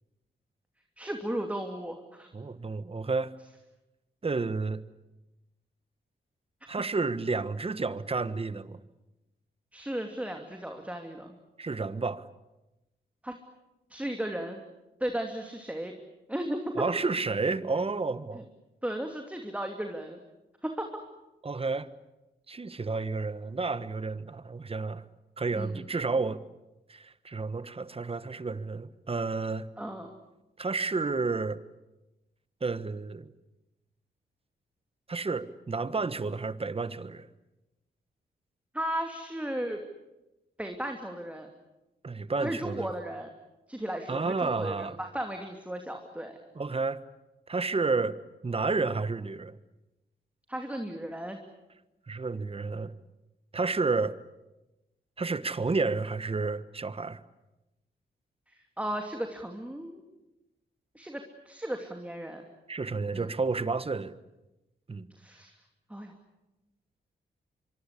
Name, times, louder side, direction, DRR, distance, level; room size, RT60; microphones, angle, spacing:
voice 1, 1.0-2.3 9.7-11.4 13.2-13.4 13.9-14.6 15.0-15.9 16.3-16.7 18.8-20.2 20.6-20.9 25.5-25.8 29.8-30.1 38.7-39.8 40.6-41.5 42.4-43.3 43.7-46.4 50.5-51.4 58.5-60.0 60.9-62.4 63.1-63.3 65.2-65.5 65.9-66.1, right 1 dB, 5° right, 3 dB, 2.8 m, -35 dB
voice 2, 2.3-3.4 4.2-4.8 6.7-8.8 11.6-12.3 16.8-18.5 21.4-21.9 22.5-25.0 25.4-26.4 26.9-29.7 30.6-31.6 32.6-33.3 35.1-37.3 42.0-42.9 44.1-45.0 46.5-47.0 47.5-48.2 48.4-49.6 52.1-52.9 53.5-54.2 55.2-57.2 62.7-64.1 64.9-65.1, right 4 dB, 30° right, 14 dB, 1.4 m, -31 dB
24.5 x 24.0 x 8.5 m, 0.98 s
cardioid pair, 80°, 19 cm